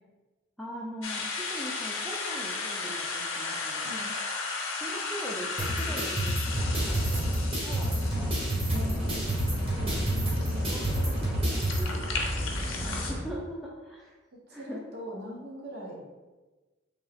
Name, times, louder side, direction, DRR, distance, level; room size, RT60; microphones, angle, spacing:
voice 1, 0.6-3.9 4.7-8.3 8.8-9.0 10.2-10.4 10.7-12.1 12.4-14.1 14.5-14.8, equal, ahead, -5 dB, 0.3 m, -42 dB
sound 1, 1.0-13.1, left 4 dB, 80° left, 0.6 m, -36 dB
sound 2, 5.6-11.8, right 1 dB, 30° right, 1.0 m, -30 dB
sound 3, 6.5-13.2, equal, 85° right, 0.9 m, -34 dB
voice 2, 8.7-9.3 9.8-10.0 10.5-10.8 14.3-16.0, equal, 55° right, -2 dB, 0.8 m, -41 dB
3.5 x 2.8 x 3.4 m, 1.2 s
head